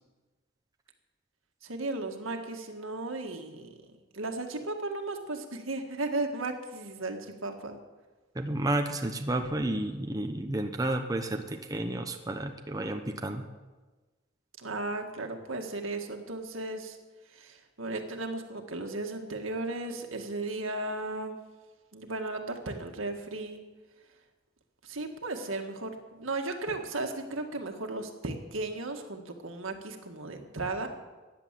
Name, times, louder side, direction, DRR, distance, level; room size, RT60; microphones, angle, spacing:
voice 1, 1.6-3.8 4.1-7.8 14.6-17.0 17.3-21.4 21.9-23.6 24.8-30.9, right 2 dB, 80° right, 4 dB, 1.9 m, -35 dB
voice 2, 8.3-13.5, right 1 dB, 20° right, 4 dB, 0.8 m, -31 dB
15.5 x 10.5 x 7.6 m, 1.3 s
head